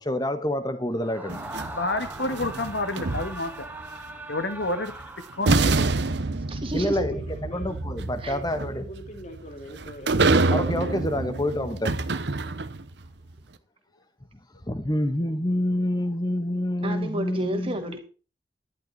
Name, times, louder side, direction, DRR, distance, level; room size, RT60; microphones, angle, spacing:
voice 1, 0.0-1.4 6.7-8.8 10.5-12.0 14.7-17.9, left 1 dB, 20° left, 1.3 m, -27 dB
Screaming, 1.0-5.8, right 1 dB, 10° right, 1.4 m, -40 dB
sound 1, 1.3-3.7 4.9-5.0 5.5-12.9, right 3 dB, 70° right, 0.9 m, -26 dB
voice 2, 1.7-3.7 4.3-4.9 5.4-5.8, left 2 dB, 75° left, 1.7 m, -29 dB
voice 3, 6.3-7.0 8.2-8.4 16.8-18.0, right 1 dB, 30° right, 2.4 m, -31 dB
voice 4, 6.8-7.7 8.2-10.2, equal, 40° left, 2.2 m, -42 dB
11.0 x 11.0 x 4.1 m
head